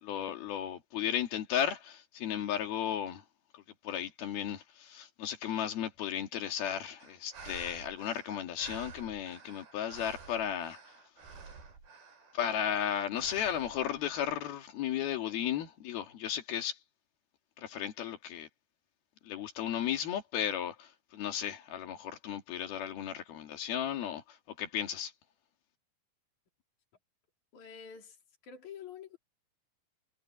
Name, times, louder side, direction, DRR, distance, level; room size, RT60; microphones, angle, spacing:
voice 1, 0.0-3.2 3.5-10.8 12.3-16.8 17.6-18.5 19.2-25.1, left 10 dB, 85° left, 4.1 m, -35 dB
sound 1, 7.0-12.5 13.1-14.5, right 5 dB, 85° right, 7.7 m, -50 dB
voice 2, 27.5-28.2 28.4-29.2, left 7 dB, 55° left, 4.7 m, -47 dB
omnidirectional pair, 4.2 m